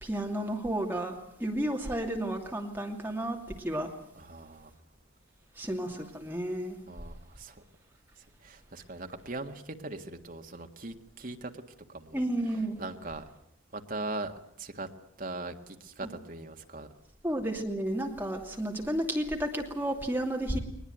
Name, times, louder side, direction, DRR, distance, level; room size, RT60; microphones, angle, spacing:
voice 1, 0.0-3.9 5.6-6.8 12.1-12.8 17.2-20.6, right 1 dB, 10° right, 1 dB, 2.6 m, -32 dB
voice 2, 4.2-4.8 6.9-7.6 8.2-11.6 11.9-13.2 13.7-14.9 15.2-16.9, right 2 dB, 45° right, 5 dB, 1.7 m, -40 dB
21.5 x 20.0 x 9.3 m, 0.73 s
head